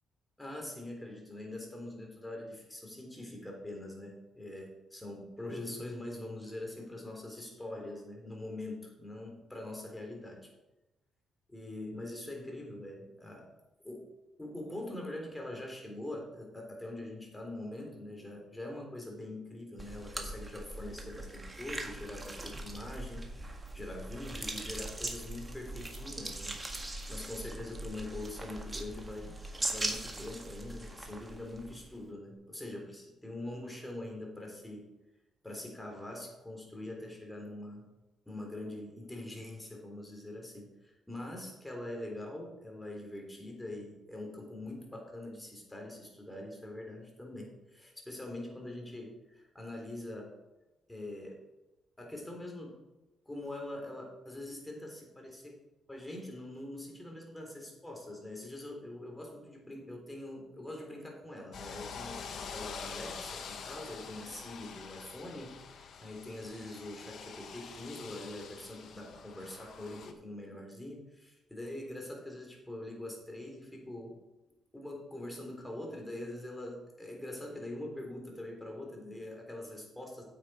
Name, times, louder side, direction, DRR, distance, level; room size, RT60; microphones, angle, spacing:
voice 1, 0.4-10.5 11.5-13.4 13.8-14.1 14.4-29.4 29.7-34.9 35.4-37.9 38.3-50.3 50.9-51.4 52.0-52.8 53.3-55.6 55.9-74.2 74.7-80.2, left 1 dB, 10° left, 0 dB, 3.6 m, -43 dB
sound 1, 19.8-32.0, right 2 dB, 15° right, 1.7 m, -41 dB
sound 2, 61.5-70.1, left 6 dB, 65° left, 1.3 m, -46 dB
9.5 x 7.7 x 4.9 m, 1.0 s
cardioid pair, 90°, 0 cm